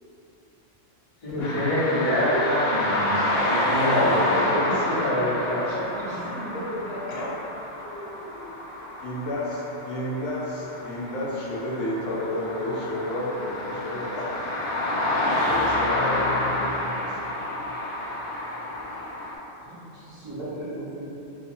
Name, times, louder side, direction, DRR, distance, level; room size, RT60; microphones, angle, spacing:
voice 1, 1.2-4.6, equal, 30° left, -13 dB, 0.9 m, -25 dB
sound 1, 1.4-19.4, left 1 dB, 65° left, 0.7 m, -28 dB
voice 2, 3.3-5.4 5.7-7.3 7.8-8.4 19.7-21.0, equal, 40° right, -13 dB, 1.0 m, -36 dB
voice 3, 4.5-5.7 7.1-7.4 9.0-14.7 15.0-17.2, left 1 dB, 90° left, -5 dB, 1.0 m, -31 dB
2.7 x 2.6 x 2.6 m, 3.0 s
omnidirectional pair, 1.2 m